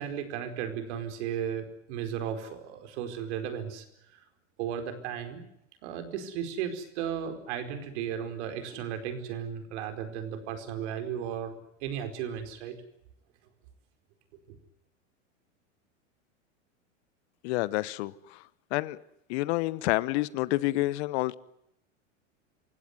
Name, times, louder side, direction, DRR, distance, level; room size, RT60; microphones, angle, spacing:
voice 1, 0.0-3.8 4.1-4.2 4.6-5.4 5.8-12.8, right 8 dB, 60° right, 4.8 m, -35 dB
voice 2, 17.4-18.1 18.7-19.0 19.3-21.3, left 19 dB, 55° left, 1.1 m, -28 dB
27.5 x 16.5 x 9.7 m
hypercardioid pair, 95°, 38 cm